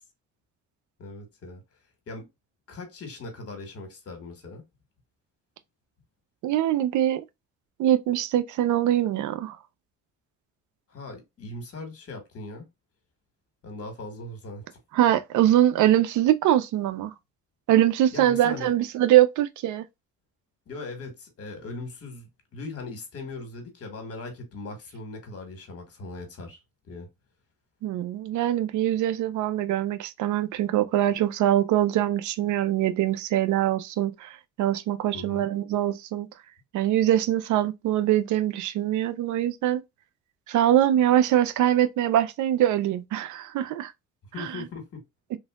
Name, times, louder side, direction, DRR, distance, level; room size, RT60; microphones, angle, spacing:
voice 1, 1.0-1.6 2.1-2.3 2.7-4.6 10.9-12.7 13.6-14.7 18.1-18.7 20.7-26.6 26.8-27.1 35.1-35.4 44.3-45.0, left 3 dB, 50° left, 1.4 m, -39 dB
voice 2, 6.4-7.2 7.8-9.6 14.9-17.1 17.7-19.9 27.8-36.3 36.7-39.8 40.5-43.9 44.4-44.7, right 12 dB, 75° right, 0.5 m, -23 dB
3.3 x 2.6 x 2.3 m
cardioid pair, 90°, 30 cm